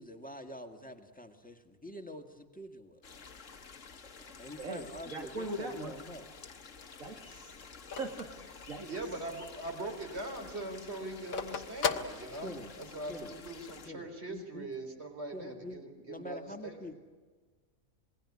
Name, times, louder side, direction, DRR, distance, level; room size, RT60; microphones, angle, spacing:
voice 1, 0.0-3.0 4.4-6.3 12.4-12.7 13.1-13.3 13.9-14.7 15.3-15.8 16.1-17.0, equal, 5° left, 5 dB, 1.8 m, -46 dB
sound 1, 3.0-13.9, left 5 dB, 65° left, 1.7 m, -51 dB
voice 2, 4.2-6.0 7.0-7.5 8.0-8.9, right 2 dB, 70° right, 4 dB, 2.5 m, -41 dB
Telephone, 5.9-9.3 9.7-9.8 10.0-12.9, left 7 dB, 80° left, 1.7 m, -38 dB
voice 3, 8.9-16.9, right 2 dB, 50° right, 4 dB, 4.1 m, -41 dB
27.5 x 21.0 x 9.7 m, 1.4 s
omnidirectional pair, 1.4 m